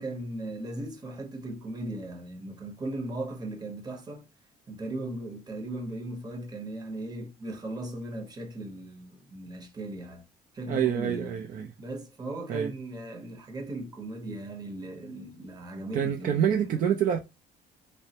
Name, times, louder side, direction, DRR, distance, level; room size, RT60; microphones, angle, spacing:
voice 1, 0.0-4.3 4.7-10.2 10.5-11.4 11.8-16.8, right 1 dB, 25° right, 0.8 m, -38 dB
voice 2, 10.7-11.7 12.5-12.7 15.9-17.2, right 9 dB, 55° right, 0.4 m, -26 dB
3.2 x 2.1 x 2.8 m
cardioid pair, 110°, 17 cm